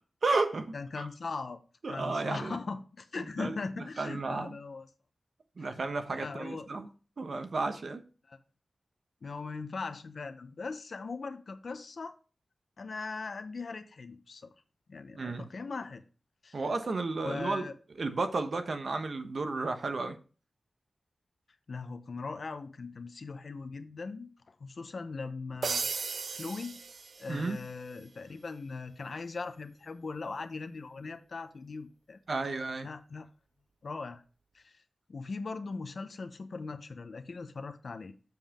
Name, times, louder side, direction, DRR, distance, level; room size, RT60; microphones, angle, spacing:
voice 1, 0.2-1.1 1.8-2.6 3.4-3.6 4.0-4.5 5.6-6.9 7.2-8.0 15.1-15.5 16.5-17.7 18.0-20.2 27.3-27.6 32.3-32.9, right 3 dB, 65° right, 1.1 m, -32 dB
voice 2, 0.7-1.6 1.9-4.9 5.6-5.8 6.1-6.7 8.3-8.4 9.2-12.1 12.8-14.5 14.9-16.0 16.4-16.6 17.2-17.7 21.7-26.8 27.2-32.2 32.8-33.3 33.8-34.2 34.5-34.8 35.1-38.1, left 4 dB, 65° left, 0.9 m, -40 dB
sound 1, 25.6-27.7, right 5 dB, 80° right, 0.4 m, -36 dB
7.5 x 7.3 x 3.7 m
wide cardioid pair, 95°, 0 cm